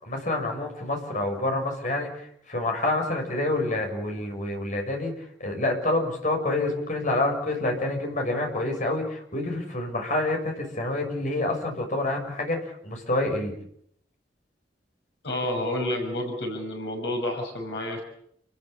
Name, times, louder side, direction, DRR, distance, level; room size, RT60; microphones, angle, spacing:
voice 1, 0.0-5.1 5.4-13.5, left 2 dB, 45° left, 2 dB, 6.7 m, -27 dB
voice 2, 15.2-18.0, left 1 dB, 70° left, 3 dB, 6.2 m, -29 dB
29.5 x 15.0 x 8.6 m, 0.70 s
head